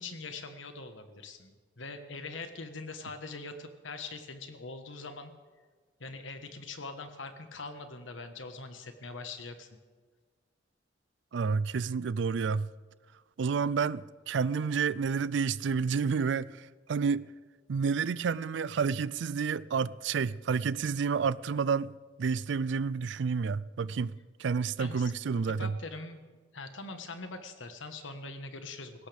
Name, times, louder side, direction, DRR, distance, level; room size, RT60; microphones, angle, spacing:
voice 1, 0.0-5.3 6.0-9.7 24.8-25.1 25.5-26.3 26.5-29.1, left 3 dB, 85° left, 1.5 m, -42 dB
voice 2, 11.3-12.7 13.4-17.2 17.7-21.9 22.2-25.7, right 5 dB, 65° right, 0.4 m, -30 dB
19.5 x 16.5 x 3.5 m
head